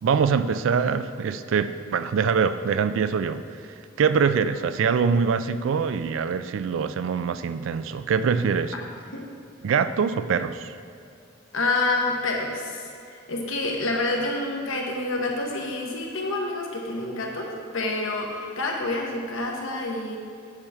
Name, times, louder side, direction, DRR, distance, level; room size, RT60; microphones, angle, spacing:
voice 1, 0.0-3.4 4.0-8.7 9.6-10.7, right 6 dB, 75° right, 12 dB, 0.3 m, -24 dB
voice 2, 11.5-20.2, left 2 dB, 80° left, 0 dB, 1.1 m, -28 dB
8.7 x 5.7 x 3.5 m, 2.5 s
head